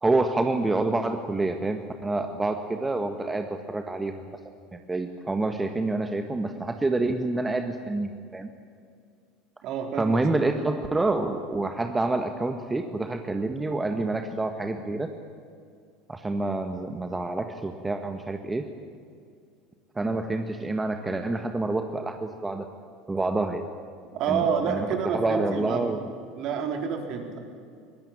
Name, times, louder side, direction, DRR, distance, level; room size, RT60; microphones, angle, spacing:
voice 1, 0.0-4.2 4.7-8.5 10.0-15.1 16.1-18.6 19.9-22.7 23.1-23.7 24.3-26.1, right 2 dB, 15° right, 6 dB, 1.6 m, -27 dB
voice 2, 9.6-10.2 24.1-25.9 26.4-27.4, right 6 dB, 50° right, 4 dB, 4.2 m, -28 dB
24.0 x 20.0 x 9.0 m, 2.3 s
figure-of-eight pair, 70°, 0 cm